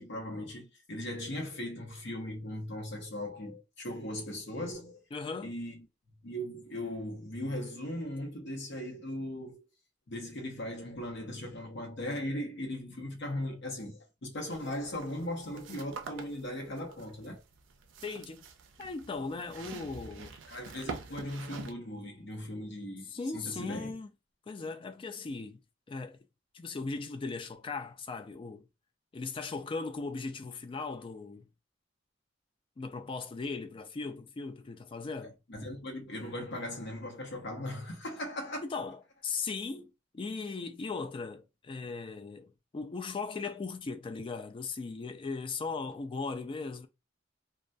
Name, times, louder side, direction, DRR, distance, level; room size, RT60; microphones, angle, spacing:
voice 1, 0.0-5.0 5.4-5.8 6.2-9.7 10.1-17.4 20.5-23.9 35.5-38.6, left 1 dB, 60° left, 0.8 m, -38 dB
voice 2, 5.1-5.5 18.0-18.5 18.8-20.3 23.1-24.1 24.5-25.6 25.9-26.2 26.5-28.6 29.1-31.5 32.8-35.4 38.6-46.9, left 4 dB, 25° left, 0.3 m, -38 dB
sound 1, 14.5-21.7, right 5 dB, 75° right, 0.4 m, -46 dB
2.2 x 2.2 x 2.5 m
head